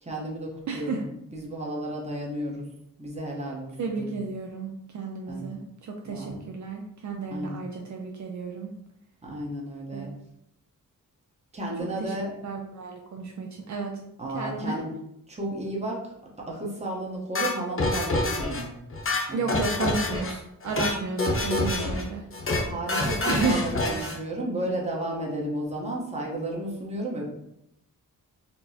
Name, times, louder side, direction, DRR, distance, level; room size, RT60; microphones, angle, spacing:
voice 1, 0.0-2.7 3.0-4.3 5.3-5.5 6.0-6.4 7.3-7.6 9.2-10.1 11.5-12.3 14.2-14.9 15.3-18.7 19.3-19.7 22.6-27.3, right 1 dB, 20° right, -3 dB, 0.8 m, -33 dB
voice 2, 0.7-1.0 3.8-8.7 9.9-10.1 12.0-12.1 12.4-14.0 14.3-14.8 19.3-22.3 23.2-23.6, right 4 dB, 60° right, 1 dB, 0.4 m, -32 dB
sound 1, 17.3-18.6 18.9-20.3 20.6-20.9 21.2-22.0 22.3-22.6 22.9-24.2, left 2 dB, 40° left, 0.7 m, -27 dB
4.3 x 2.1 x 2.7 m, 0.82 s
wide cardioid pair, 110°, 34 cm